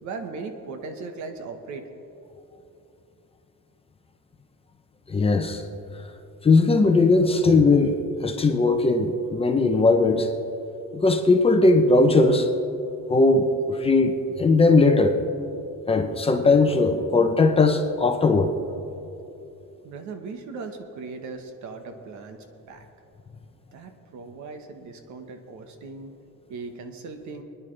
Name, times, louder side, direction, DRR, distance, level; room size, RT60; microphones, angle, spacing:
voice 1, 0.0-1.9 19.8-22.9 23.7-26.1 26.5-27.4, right 4 dB, 70° right, 6 dB, 1.4 m, -38 dB
voice 2, 5.1-5.6 6.4-10.3 10.9-12.5 13.1-15.2 15.9-18.5, left 3 dB, 20° left, 5 dB, 0.7 m, -19 dB
27.5 x 10.5 x 3.4 m, 2.8 s
cardioid pair, 170°, 30 cm